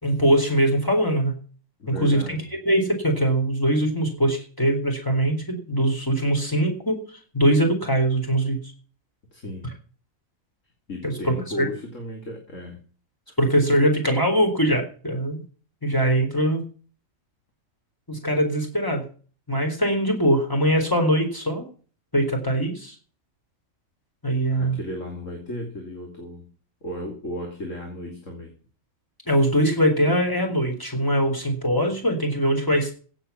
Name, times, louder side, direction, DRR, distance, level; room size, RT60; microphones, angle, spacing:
voice 1, 0.0-1.3 1.9-2.4 2.7-7.1 7.3-8.6 11.0-11.7 13.4-15.4 15.8-16.6 18.1-19.0 19.5-21.7 22.1-22.9 24.2-24.8 29.3-32.9, right 1 dB, 15° left, 3 dB, 4.3 m, -22 dB
voice 2, 1.8-2.5 9.3-9.7 10.9-12.8 24.5-26.5 26.8-28.5, left 1 dB, 60° left, 2 dB, 3.3 m, -35 dB
16.5 x 8.3 x 5.9 m, 0.40 s
omnidirectional pair, 1.5 m